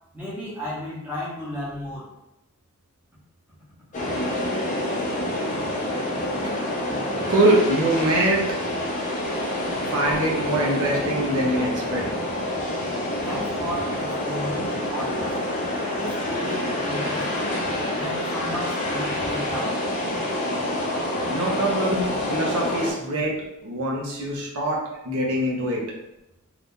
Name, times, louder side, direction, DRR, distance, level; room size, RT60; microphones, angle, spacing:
voice 1, 0.1-2.1 13.2-15.3 16.0-17.6 17.9-19.8, equal, 5° right, -9 dB, 0.9 m, -34 dB
sound 1, 3.9-22.9, left 1 dB, 35° left, 0.6 m, -27 dB
voice 2, 7.3-8.5 9.9-12.0 21.3-25.8, right 1 dB, 85° right, -3 dB, 0.8 m, -23 dB
2.8 x 2.5 x 3.6 m, 0.90 s
head